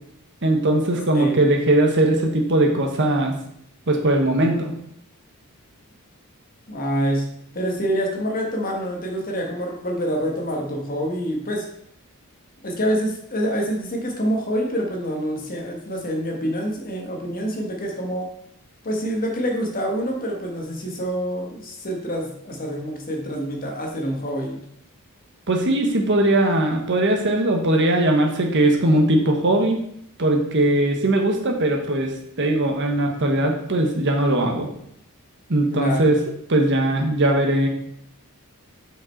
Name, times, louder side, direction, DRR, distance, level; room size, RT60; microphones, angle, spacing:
voice 1, 0.4-3.3 3.9-4.7 25.5-29.8 30.2-32.1 32.4-34.7 35.5-36.2 36.5-37.7, right 1 dB, 55° right, 2 dB, 1.2 m, -20 dB
voice 2, 1.1-1.5 6.7-7.2 7.5-11.6 12.6-18.3 18.8-24.6 35.7-36.2, equal, 40° left, 1 dB, 1.5 m, -26 dB
6.3 x 5.5 x 4.5 m, 0.71 s
head